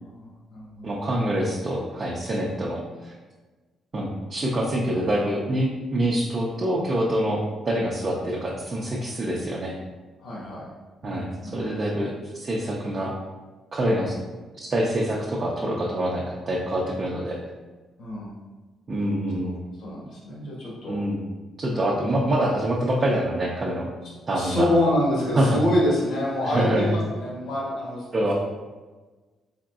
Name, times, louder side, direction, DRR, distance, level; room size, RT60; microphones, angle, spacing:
voice 1, 0.0-1.0 10.2-10.6 11.0-11.6 18.0-18.3 19.8-21.0 21.6-21.8 24.3-28.1, left 1 dB, 65° left, -5 dB, 1.3 m, -26 dB
voice 2, 0.8-3.1 3.9-9.7 11.0-13.1 13.7-14.2 14.6-17.4 18.9-19.5 20.9-21.2 21.6-23.9 24.3-24.7 25.4-25.6 26.4-26.9 28.1-28.3, right 1 dB, 40° right, -4 dB, 0.6 m, -25 dB
3.8 x 3.5 x 2.4 m, 1.3 s
cardioid pair, 90°, 0 cm